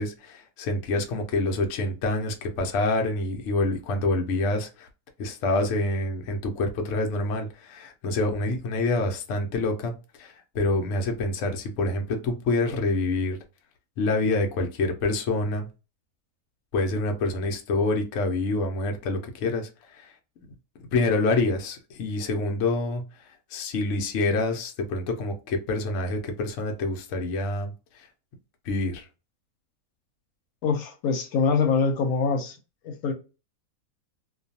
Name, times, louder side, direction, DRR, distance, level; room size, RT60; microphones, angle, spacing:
voice 1, 0.0-4.9 5.2-9.9 10.2-13.4 14.0-15.7 16.7-20.1 20.9-23.0 23.5-28.1 28.7-29.1, left 2 dB, 65° left, 0.8 m, -27 dB
voice 2, 30.6-32.6 32.8-33.1, left 5 dB, 85° left, 1.1 m, -24 dB
2.5 x 2.2 x 2.7 m
omnidirectional pair, 1.5 m